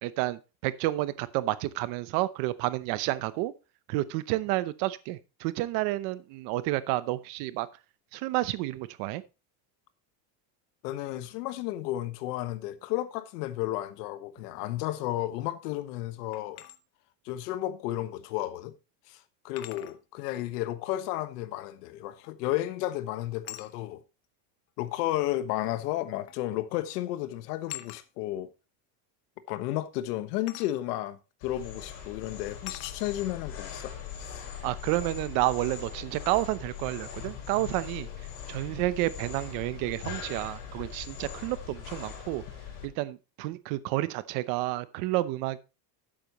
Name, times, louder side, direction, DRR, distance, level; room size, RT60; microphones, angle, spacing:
voice 1, 0.0-3.5 3.9-7.7 8.1-9.2 34.6-38.1 38.5-42.4 42.8-45.6, right 17 dB, 45° right, 0.8 m, -30 dB
voice 2, 10.8-16.6 17.2-18.7 19.1-24.0 24.8-28.5 29.5-34.5, left 14 dB, 85° left, 1.4 m, -33 dB
sound 1, 16.3-16.8 18.3-18.4 19.6-20.0 22.2-22.5 23.4-23.7 24.9-25.0 26.3-26.5 26.8-27.0 27.7-28.0 30.5-30.7 31.5-31.7 32.7-33.0, left 14 dB, 35° left, 0.8 m, -43 dB
sound 2, 31.4-42.8, left 8 dB, 60° left, 5.9 m, -41 dB
12.5 x 8.8 x 3.0 m
cardioid pair, 180°, 46 cm